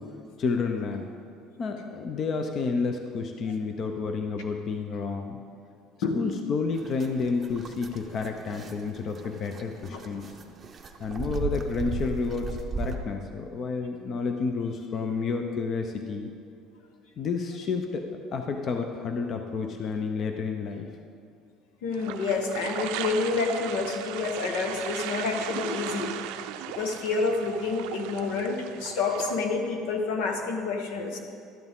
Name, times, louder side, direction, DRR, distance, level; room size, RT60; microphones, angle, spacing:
voice 1, 0.4-1.1 1.6-5.4 6.2-10.2 11.0-16.3 17.2-20.9, left 4 dB, 35° left, 5 dB, 0.6 m, -30 dB
sound 1, 6.7-13.0, right 4 dB, 20° right, 0.6 m, -36 dB
voice 2, 21.8-26.3 26.7-31.2, left 4 dB, 85° left, 4 dB, 1.3 m, -28 dB
sound 2, 21.9-29.4, right 11 dB, 85° right, 0.5 m, -37 dB
12.5 x 10.5 x 3.6 m, 2.3 s
cardioid pair, 155°, 0 cm